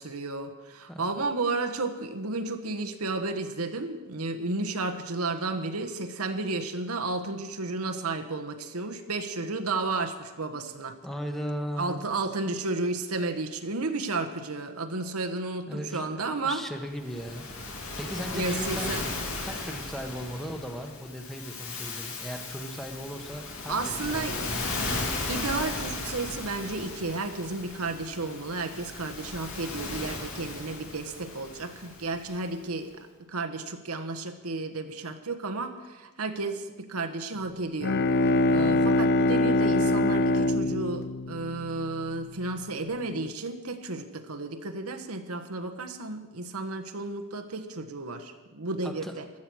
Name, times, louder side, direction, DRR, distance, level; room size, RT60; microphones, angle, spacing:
voice 1, 0.0-11.0 11.8-16.6 18.3-19.0 23.7-24.6 25.3-49.3, right 3 dB, 85° right, 7 dB, 1.3 m, -32 dB
voice 2, 11.0-12.0 15.7-17.4 18.0-18.9 19.4-24.7 48.8-49.1, equal, ahead, 4 dB, 1.3 m, -37 dB
Waves surf, 17.0-32.5, left 3 dB, 70° left, 2.7 m, -36 dB
Bowed string instrument, 37.6-42.3, left 1 dB, 50° left, 0.6 m, -24 dB
16.0 x 12.0 x 6.3 m, 1.2 s
head